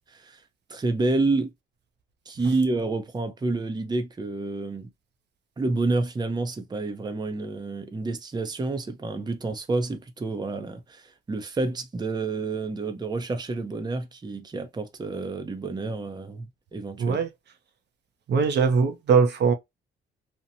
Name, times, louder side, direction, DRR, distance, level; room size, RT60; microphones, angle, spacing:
voice 1, 0.7-1.5 2.3-4.9 5.6-17.2, right 3 dB, 20° right, 0.6 m, -29 dB
voice 2, 17.0-17.3 18.3-19.5, right 5 dB, 60° right, 0.7 m, -21 dB
2.9 x 2.1 x 2.6 m
cardioid pair, 90°, 20 cm